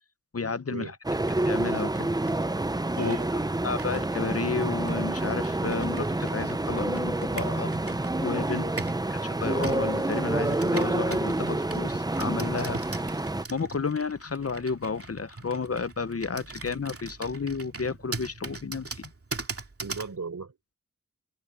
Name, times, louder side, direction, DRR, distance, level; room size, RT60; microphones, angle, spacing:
voice 1, 0.3-1.0 1.4-2.1 3.0-7.7 8.2-8.6 9.4-12.8 13.5-19.1, left 5 dB, 50° left, 0.9 m, -32 dB
sound 1, 1.0-13.4, right 2 dB, 15° right, 0.6 m, -28 dB
Computer keyboard, 1.2-9.1 9.6-20.2, right 3 dB, 45° right, 2.5 m, -41 dB
voice 2, 2.9-3.5 8.5-8.7 19.8-20.8, right 4 dB, 70° right, 4.1 m, -38 dB
open air
wide cardioid pair, 55°, 31 cm